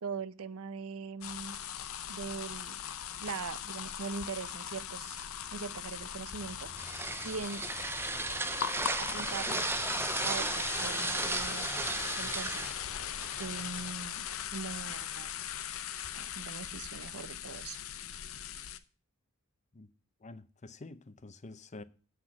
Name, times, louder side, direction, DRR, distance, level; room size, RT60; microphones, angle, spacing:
voice 1, 0.0-1.6 2.1-2.8 3.2-5.2 5.5-6.7 7.2-7.7 9.0-9.7 10.2-11.7 12.2-12.7 13.4-14.3 14.5-15.3 16.1-17.8, right 5 dB, 70° right, 0.6 m, -41 dB
sound 1, 1.2-18.8, left 9 dB, 70° left, 0.7 m, -39 dB
sound 2, 6.4-13.9, right 3 dB, 10° right, 0.4 m, -35 dB
voice 2, 20.2-21.8, left 2 dB, 35° left, 0.6 m, -48 dB
7.9 x 5.9 x 7.2 m
head